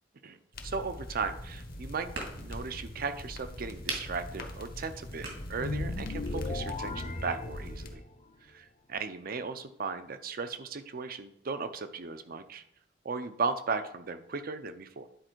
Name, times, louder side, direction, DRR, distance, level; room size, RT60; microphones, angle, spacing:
voice 1, 0.2-2.1 2.4-8.0 8.5-12.6 13.0-15.1, right 4 dB, 55° right, 10 dB, 0.6 m, -36 dB
sound 1, 0.5-7.9, left 1 dB, 55° left, 1.0 m, -42 dB
sound 2, 1.2-6.6, right 3 dB, 75° right, 2.1 m, -44 dB
sound 3, 5.5-8.1, left 2 dB, 40° left, 0.5 m, -36 dB
10.0 x 4.3 x 4.5 m, 0.76 s
head